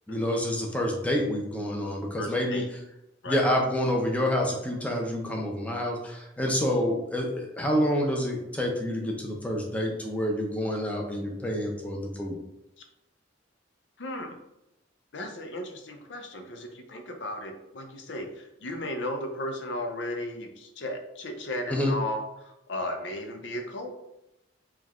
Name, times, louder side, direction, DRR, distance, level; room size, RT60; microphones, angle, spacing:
voice 1, 0.1-2.6 3.3-12.4 21.7-21.9, equal, 10° left, -1 dB, 0.6 m, -28 dB
voice 2, 2.2-2.7 3.2-3.4 14.0-14.4 15.1-23.9, left 1 dB, 75° left, 5 dB, 0.6 m, -35 dB
4.5 x 2.3 x 3.6 m, 0.88 s
head